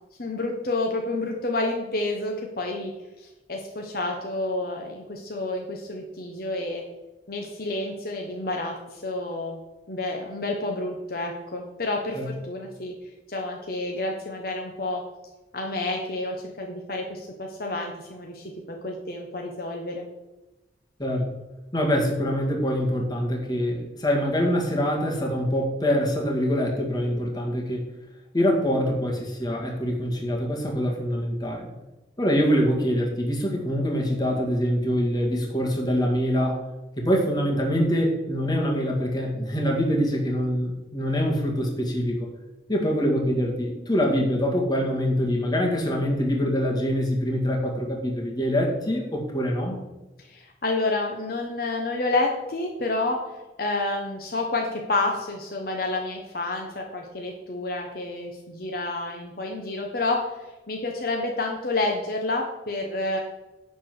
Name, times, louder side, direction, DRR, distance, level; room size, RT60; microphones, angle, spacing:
voice 1, 0.2-2.9 3.2-6.8 7.3-9.6 9.9-12.9 13.3-15.0 15.5-20.1 50.2-53.2 53.6-63.2, left 2 dB, 55° left, 1 dB, 1.2 m, -29 dB
voice 2, 21.7-27.9 28.3-31.7 32.2-36.6 37.0-42.3 42.7-49.8, equal, 25° left, -1 dB, 2.2 m, -24 dB
10.5 x 4.5 x 7.8 m, 1.0 s
head